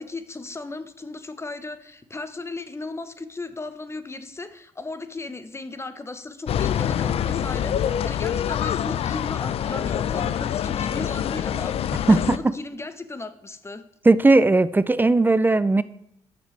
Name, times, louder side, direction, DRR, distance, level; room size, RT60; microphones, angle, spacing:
voice 1, 0.0-13.8, left 3 dB, 25° left, 11 dB, 0.9 m, -36 dB
sound 1, 6.5-12.4, left 9 dB, 60° left, 0.4 m, -25 dB
voice 2, 12.1-12.5 14.0-15.8, right 2 dB, 20° right, 16 dB, 0.4 m, -17 dB
9.0 x 6.6 x 3.3 m, 0.77 s
supercardioid pair, 60°, 11 cm